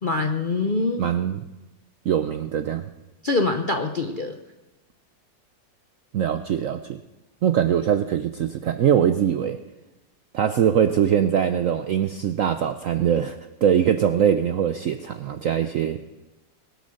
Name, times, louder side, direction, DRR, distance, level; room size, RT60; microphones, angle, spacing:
voice 1, 0.0-1.0 3.2-4.4, left 3 dB, 50° left, 4 dB, 0.6 m, -24 dB
voice 2, 1.0-1.4 2.1-2.8 6.1-7.0 7.4-9.6 10.3-16.1, right 9 dB, 70° right, 9 dB, 0.7 m, -22 dB
21.5 x 8.3 x 6.4 m, 1.0 s
omnidirectional pair, 2.1 m